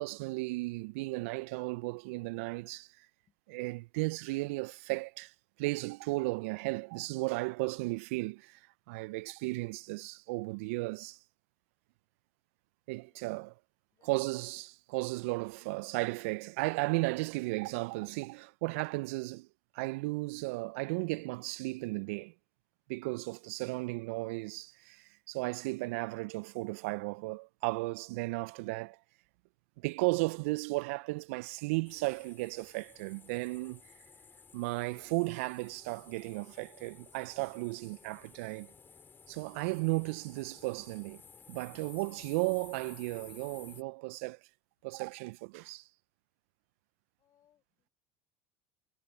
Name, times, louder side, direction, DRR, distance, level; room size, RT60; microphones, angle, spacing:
voice 1, 0.0-3.1 3.5-5.3 5.6-8.6 8.9-11.2 12.9-13.5 14.0-19.5 19.7-22.3 22.9-29.0 29.8-33.8 34.5-38.7 39.3-41.2 41.5-44.4 44.8-45.9, right 25 dB, 70° right, 0.5 m, -35 dB
voice 2, 13.0-13.4 13.9-14.2 47.2-47.9, left 11 dB, 45° left, 3.8 m, -72 dB
sound 1, 31.8-43.8, left 6 dB, 30° left, 3.7 m, -56 dB
hypercardioid pair, 80°, 8 cm